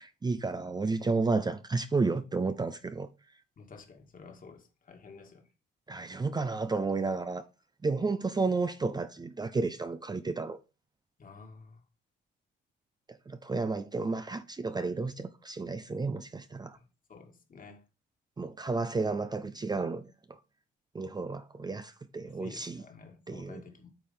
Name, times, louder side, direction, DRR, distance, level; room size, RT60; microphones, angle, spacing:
voice 1, 0.0-3.1 5.9-7.5 7.8-10.6 13.3-16.8 18.4-20.4 20.9-22.8 23.3-23.6, right 3 dB, 20° right, 0.5 m, -32 dB
voice 2, 3.6-5.5 11.2-11.8 16.7-17.8 22.2-23.9, left 4 dB, 45° left, 2.0 m, -51 dB
9.0 x 3.4 x 5.5 m
cardioid pair, 90°, 20 cm